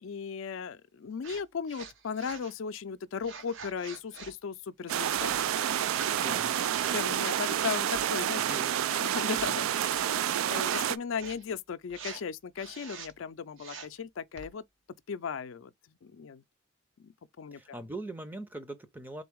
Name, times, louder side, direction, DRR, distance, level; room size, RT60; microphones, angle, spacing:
voice 1, 0.0-5.3 6.1-6.3 6.9-8.4 8.9-14.6 15.1-15.7 16.0-16.4 17.0-17.1 17.4-17.6, left 6 dB, 75° left, 0.4 m, -37 dB
sound 1, 1.2-1.4 1.7-2.5 3.2-4.3 4.9-5.4 5.8-6.2 6.6-7.0 7.6-8.7 9.0-10.2 10.6-10.9 11.1-11.4 11.9-12.2 12.6-13.1 13.6-14.0 14.4-14.5, right 5 dB, 70° right, 0.8 m, -45 dB
sound 2, 4.9-11.0, right 10 dB, 85° right, 0.3 m, -29 dB
voice 2, 6.2-7.1 8.4-8.8 9.4-9.7 17.5-19.2, right 2 dB, 10° right, 0.5 m, -42 dB
3.8 x 3.8 x 3.4 m
head